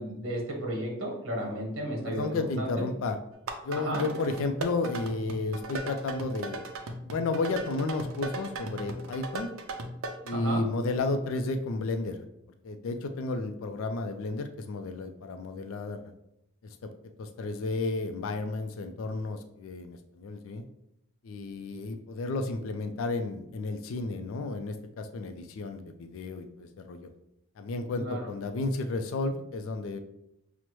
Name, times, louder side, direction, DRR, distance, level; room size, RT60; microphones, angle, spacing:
voice 1, 0.0-2.9 3.8-4.1 10.3-10.6 27.9-28.3, right 1 dB, 60° right, -1 dB, 1.2 m, -33 dB
voice 2, 2.0-3.2 3.6-6.6 7.0-9.5 10.2-12.2 12.6-16.0 16.6-16.9 17.2-20.6 21.2-27.1 27.6-30.0, left 3 dB, 70° left, 8 dB, 0.4 m, -32 dB
sound 1, 3.3-10.3, right 2 dB, 75° right, 0.5 m, -37 dB
5.9 x 2.0 x 3.0 m, 0.80 s
head